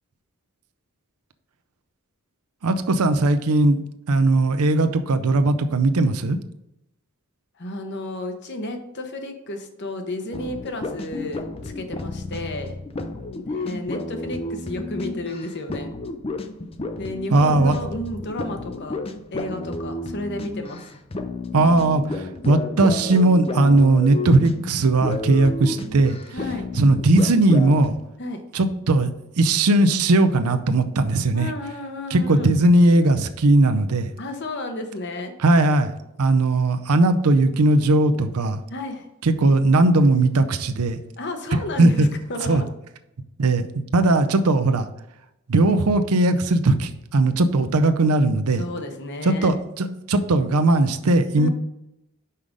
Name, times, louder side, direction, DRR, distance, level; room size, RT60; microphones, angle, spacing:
voice 1, 2.6-3.8 4.1-6.4 17.3-17.8 21.5-26.2 26.7-27.9 28.5-29.1 29.4-31.5 32.1-34.1 35.4-35.9 36.2-38.6 39.2-41.0 41.5-42.1 42.4-42.6 43.4-44.9 45.5-48.6 49.2-51.5, right 2 dB, 80° right, 9 dB, 0.6 m, -18 dB
voice 2, 7.6-12.8 13.3-15.9 17.0-19.0 19.3-20.9 26.3-26.7 28.2-28.4 31.3-32.5 34.2-35.3 38.7-39.1 41.2-42.7 48.6-49.6 51.4-51.5, left 1 dB, 50° left, 6 dB, 0.9 m, -32 dB
sound 1, 10.3-28.0, left 2 dB, 25° left, 0.5 m, -32 dB
5.6 x 4.9 x 5.2 m, 0.88 s
head